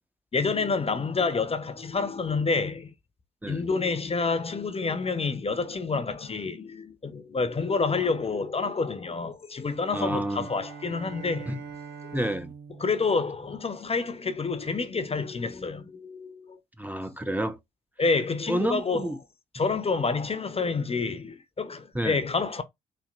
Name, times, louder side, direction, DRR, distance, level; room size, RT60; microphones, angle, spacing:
voice 1, 0.3-2.9 3.5-11.5 12.0-12.2 12.8-16.6 18.0-19.1 19.5-22.6, left 4 dB, 30° left, 0.8 m, -28 dB
sound 1, 9.6-14.1, right 6 dB, 60° right, 2.3 m, -44 dB
voice 2, 9.9-10.5 11.5-11.6 12.1-12.5 16.8-17.6 18.5-19.2 21.9-22.2, right 1 dB, 10° right, 0.8 m, -29 dB
4.3 x 2.9 x 2.5 m
hypercardioid pair, 40°, 19 cm